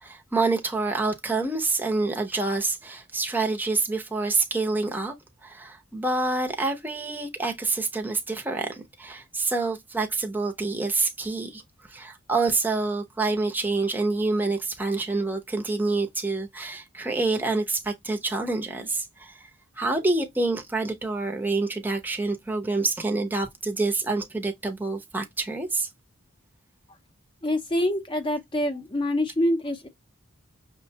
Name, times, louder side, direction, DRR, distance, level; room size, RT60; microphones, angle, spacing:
voice 1, 0.0-5.1 5.4-11.6 11.9-19.5 19.8-25.9, right 3 dB, 10° right, 0.7 m, -27 dB
voice 2, 27.4-29.9, left 1 dB, 25° left, 0.7 m, -25 dB
6.1 x 2.2 x 2.8 m
head